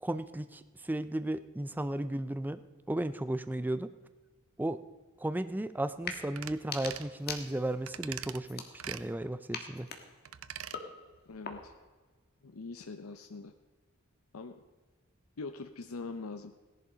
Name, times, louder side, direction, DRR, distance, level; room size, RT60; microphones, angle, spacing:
voice 1, 0.0-2.6 2.9-3.9 4.6-4.8 5.2-9.9, right 1 dB, 10° right, 12 dB, 0.4 m, -34 dB
sound 1, 5.9-6.2 6.6-7.9 8.4-9.1 9.5-11.9, left 5 dB, 50° left, 1.5 m, -43 dB
sound 2, 6.4-6.6 6.8-7.1 7.9-8.4 8.8-9.1 10.3-10.8 11.1-11.2, right 10 dB, 80° right, 0.6 m, -42 dB
voice 2, 11.3-11.7 12.4-13.5 14.3-14.6 15.4-16.5, left 3 dB, 80° left, 7 dB, 0.7 m, -43 dB
16.5 x 11.0 x 5.0 m, 1.3 s
head